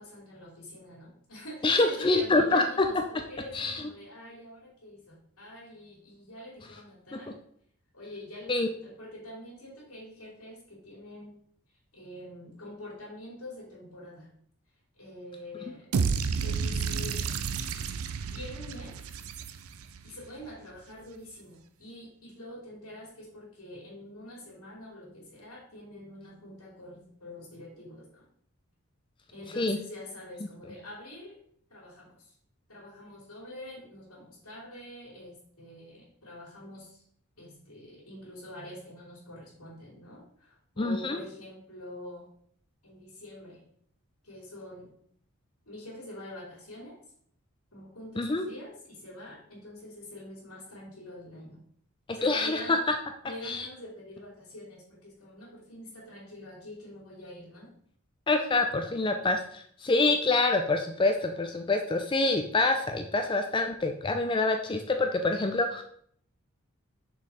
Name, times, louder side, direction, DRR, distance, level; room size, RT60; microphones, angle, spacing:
voice 1, 0.0-7.3 7.9-11.3 11.9-14.3 14.9-15.9 16.4-17.3 18.3-19.0 20.0-28.3 29.3-31.4 31.7-32.3 32.7-37.0 37.4-42.3 42.8-43.6 44.2-44.9 45.7-47.0 47.7-51.6 52.1-52.8 53.2-57.7, left 1 dB, 90° left, -5 dB, 2.6 m, -45 dB
voice 2, 1.6-2.9 3.5-3.8 8.5-8.7 29.6-29.8 40.8-41.2 48.2-48.5 52.2-52.8 53.4-53.7 58.3-65.8, left 2 dB, 20° left, 5 dB, 0.4 m, -26 dB
sound 1, 15.9-20.0, right 5 dB, 75° right, 0.5 m, -31 dB
6.1 x 4.0 x 4.1 m, 0.63 s
head